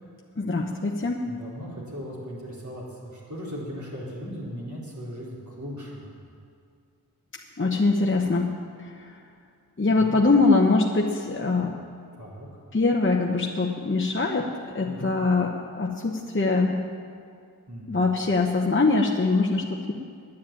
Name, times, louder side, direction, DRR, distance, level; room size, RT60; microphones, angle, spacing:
voice 1, 0.4-1.3 7.6-8.5 8.8-9.1 9.8-11.7 12.7-14.5 14.7-16.7 17.9-19.9, left 3 dB, 30° left, -1 dB, 1.0 m, -23 dB
voice 2, 1.3-6.1 10.0-10.2 12.2-12.5 14.8-15.1 17.7-17.9, equal, 50° right, -5 dB, 4.4 m, -37 dB
10.0 x 10.0 x 8.8 m, 2.3 s
wide cardioid pair, 45°, 39 cm